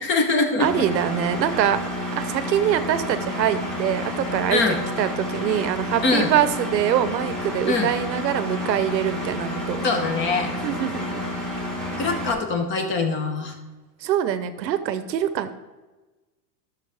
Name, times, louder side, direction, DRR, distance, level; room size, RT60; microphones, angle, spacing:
voice 1, 0.0-0.9 4.5-4.8 6.0-6.3 7.7-7.9 9.8-10.5 12.0-13.6, left 3 dB, 25° left, 5 dB, 1.0 m, -23 dB
Engine, 0.6-12.3, left 1 dB, ahead, 1.2 m, -30 dB
voice 2, 0.6-1.8 2.2-9.8 10.6-11.2 14.0-15.5, right 10 dB, 90° right, 12 dB, 1.0 m, -24 dB
13.0 x 6.4 x 3.5 m, 1.2 s
supercardioid pair, 150°, 49 cm